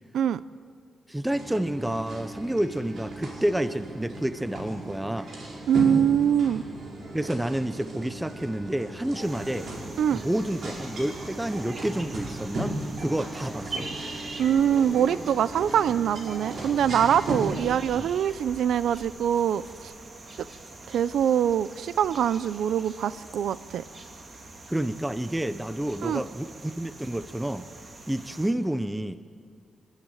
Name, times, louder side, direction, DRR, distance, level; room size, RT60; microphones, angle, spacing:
voice 1, 1.1-5.3 7.1-9.7 10.1-13.9 17.4-17.5 18.0-18.1 24.7-27.7 28.1-29.2, right 1 dB, 5° right, 12 dB, 0.7 m, -29 dB
sound 1, 1.3-17.6, right 1 dB, 65° right, 5.0 m, -36 dB
voice 2, 5.7-6.6 10.0-10.2 14.4-19.9 20.9-23.8 26.0-26.2, right 9 dB, 85° right, 17 dB, 0.5 m, -24 dB
sound 2, 9.2-28.5, right 2 dB, 40° right, 2.4 m, -44 dB
28.5 x 12.0 x 9.1 m, 2.3 s
wide cardioid pair, 135°, 0 cm